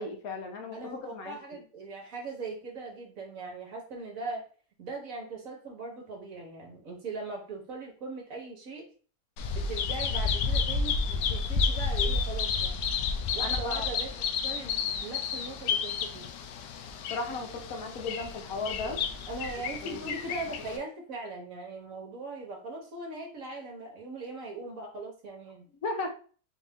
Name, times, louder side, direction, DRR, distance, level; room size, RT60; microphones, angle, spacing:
voice 1, 0.0-0.8 1.1-1.6 13.4-13.9 17.1-19.0 19.8-20.1 25.8-26.1, left 3 dB, 65° left, 3 dB, 1.2 m, -35 dB
voice 2, 0.7-4.5 4.8-8.9 9.5-12.8 13.3-14.1 14.4-16.3 18.8-25.7, right 3 dB, 55° right, 1 dB, 1.3 m, -40 dB
Bird vocalization bird call bird song, 9.4-20.8, left 5 dB, 90° left, 1.2 m, -31 dB
4.4 x 2.6 x 3.4 m, 0.41 s
omnidirectional pair, 1.8 m